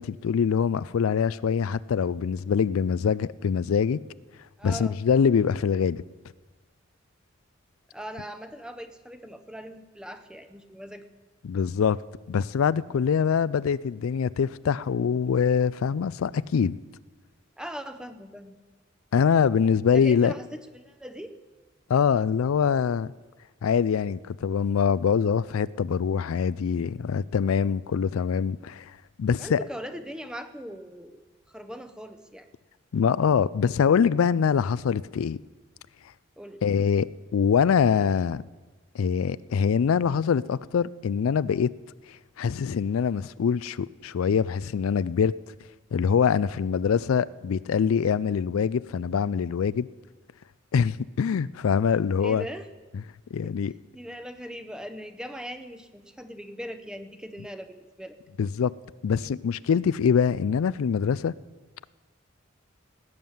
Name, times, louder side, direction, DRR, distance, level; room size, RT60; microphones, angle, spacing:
voice 1, 0.0-4.0 4.6-6.0 11.4-12.0 12.3-16.8 19.1-20.3 21.9-23.1 23.6-28.8 29.2-29.6 32.9-35.4 36.6-37.1 37.3-38.4 38.9-41.7 42.4-45.3 45.9-49.9 50.7-52.4 53.3-53.7 58.4-58.7 59.0-61.3, left 6 dB, 90° left, 0.4 m, -24 dB
voice 2, 4.6-5.0 7.9-11.0 17.6-18.5 19.9-20.5 20.7-21.4 29.4-31.2 31.5-32.5 36.4-36.6 52.2-52.7 53.4-53.6 53.9-58.2, equal, 5° right, 0.8 m, -40 dB
17.5 x 9.4 x 7.2 m
head